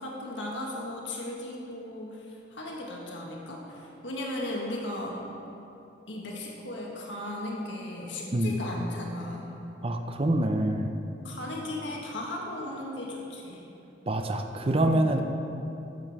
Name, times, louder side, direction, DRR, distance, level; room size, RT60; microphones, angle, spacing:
voice 1, 0.0-5.2 6.1-9.5 11.2-13.7 14.8-15.1, left 1 dB, 80° left, -2 dB, 1.7 m, -36 dB
voice 2, 9.8-10.9 14.1-15.2, right 1 dB, 30° right, 5 dB, 0.6 m, -25 dB
12.5 x 7.6 x 4.8 m, 2.9 s
head